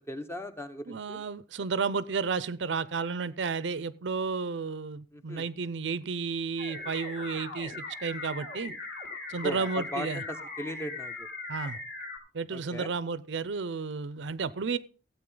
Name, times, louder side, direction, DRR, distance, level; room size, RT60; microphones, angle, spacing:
voice 1, 0.1-1.2 5.1-5.5 9.4-11.3 12.5-12.9, equal, 15° left, 9 dB, 0.9 m, -38 dB
voice 2, 0.9-7.7 8.0-8.7 9.3-10.2 11.5-11.8 12.3-14.8, right 5 dB, 90° right, 18 dB, 0.6 m, -32 dB
sound 1, 6.6-12.2, left 3 dB, 60° left, 3.5 m, -39 dB
15.5 x 8.3 x 3.9 m, 0.37 s
head